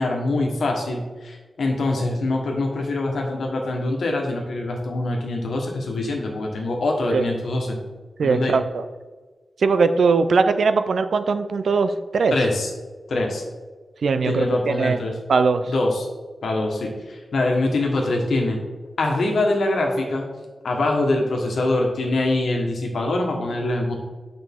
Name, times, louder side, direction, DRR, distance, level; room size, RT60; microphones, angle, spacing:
voice 1, 0.0-7.8 8.2-8.5 12.3-12.7 13.1-13.4 14.2-15.1 15.7-16.1 16.4-18.6 19.0-20.2 20.6-24.0, left 2 dB, 80° left, 1 dB, 1.4 m, -24 dB
voice 2, 8.2-8.8 9.6-12.4 14.0-15.0 15.3-15.7, right 4 dB, 80° right, 10 dB, 0.5 m, -20 dB
8.5 x 5.2 x 3.6 m, 1.3 s
wide cardioid pair, 160°, 0 cm